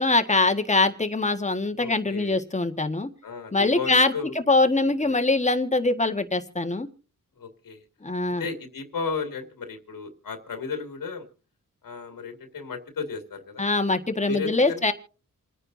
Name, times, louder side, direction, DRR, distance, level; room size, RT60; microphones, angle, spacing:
voice 1, 0.0-3.1 3.5-6.9 8.0-8.4 13.6-14.9, left 3 dB, 20° left, 7 dB, 1.6 m, -23 dB
voice 2, 1.8-2.4 3.2-4.3 5.0-5.2 7.4-7.8 8.2-11.3 11.8-13.6 14.3-14.9, left 5 dB, 85° left, 6 dB, 2.3 m, -34 dB
28.0 x 10.0 x 2.7 m, 0.38 s
cardioid pair, 80°, 33 cm